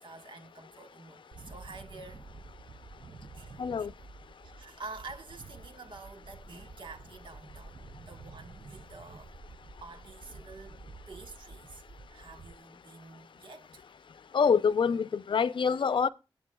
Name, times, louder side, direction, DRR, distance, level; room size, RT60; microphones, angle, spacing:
voice 1, 0.0-2.2 3.4-3.9 4.6-9.3 9.8-10.8 11.1-11.8 12.1-13.8, right 3 dB, 70° right, 1.5 m, -48 dB
sound 1, 1.3-12.5, right 3 dB, 45° right, 0.6 m, -50 dB
voice 2, 3.6-3.9 14.3-16.1, left 6 dB, 65° left, 0.5 m, -26 dB
22.0 x 8.3 x 2.3 m
wide cardioid pair, 75°, 9 cm